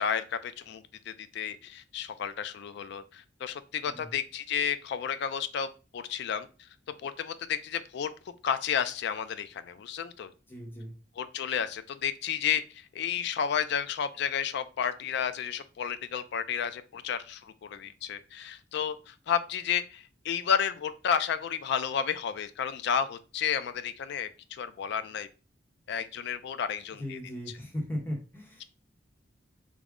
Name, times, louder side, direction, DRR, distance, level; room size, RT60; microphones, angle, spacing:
voice 1, 0.0-5.7 5.9-6.5 7.0-8.1 8.4-10.3 11.2-25.3 25.9-27.2, left 8 dB, 65° left, 12 dB, 0.3 m, -32 dB
voice 2, 10.5-10.9 27.0-28.6, equal, 10° left, -1 dB, 0.8 m, -37 dB
3.6 x 2.0 x 3.5 m, 0.33 s
head